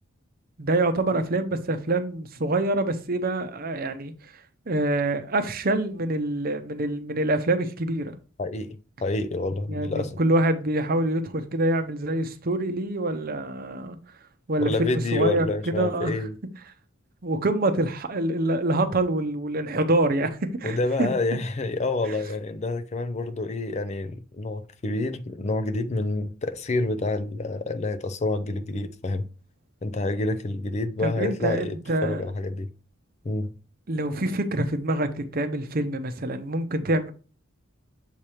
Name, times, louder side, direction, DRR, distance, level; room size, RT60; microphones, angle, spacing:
voice 1, 0.6-4.3 4.7-8.1 9.7-14.0 14.5-16.1 17.2-21.1 22.1-22.2 31.0-32.2 33.9-37.1, right 2 dB, 45° right, 0.7 m, -26 dB
voice 2, 8.4-10.2 14.6-16.3 20.6-29.3 29.8-31.8 32.0-32.7 33.2-33.5, left 2 dB, 30° left, 0.4 m, -28 dB
7.4 x 2.9 x 4.9 m
head